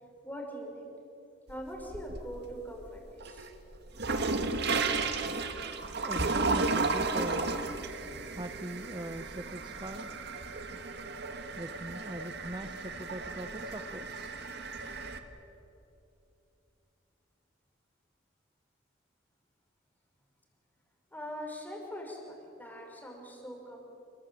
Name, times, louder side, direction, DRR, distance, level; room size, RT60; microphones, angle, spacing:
voice 1, 0.2-0.9 1.5-3.5 21.1-23.8, equal, 10° left, 0 dB, 5.7 m, -42 dB
sound 1, 1.5-2.4 2.9-15.2, right 3 dB, 60° right, 1.9 m, -34 dB
voice 2, 6.0-7.6 8.3-11.0 11.5-14.5, right 1 dB, 25° right, 8 dB, 0.9 m, -42 dB
29.0 x 20.5 x 9.0 m, 2.9 s
head